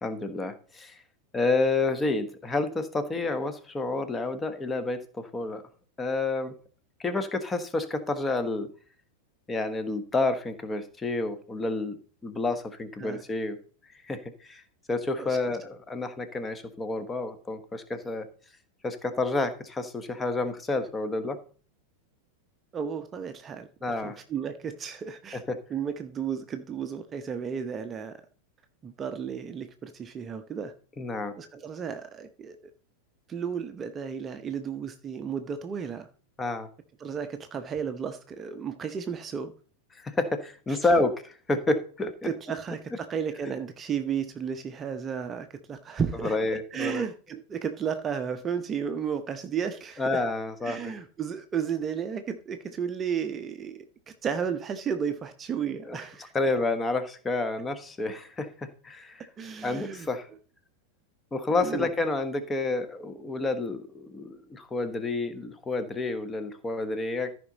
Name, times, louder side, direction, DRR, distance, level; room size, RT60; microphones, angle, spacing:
voice 1, 0.0-1.0 1.3-5.6 6.0-6.5 7.0-8.7 9.5-12.0 12.2-13.6 14.0-14.6 14.9-18.3 18.8-21.4 23.8-24.2 25.3-25.6 31.0-31.3 36.4-36.7 40.0-42.3 46.2-47.0 50.0-50.9 55.9-56.0 56.3-59.3 59.6-60.3 61.3-67.3, left 3 dB, 15° left, 1.3 m, -29 dB
voice 2, 15.2-15.6 22.7-23.7 24.0-25.4 25.7-28.2 28.8-30.7 31.4-32.6 33.3-36.1 37.0-39.5 42.2-46.4 46.7-50.2 50.6-53.9 54.2-56.3 59.4-60.1 61.6-61.9, right 7 dB, 25° right, 0.8 m, -33 dB
14.0 x 5.2 x 4.0 m
figure-of-eight pair, 90°, 0 cm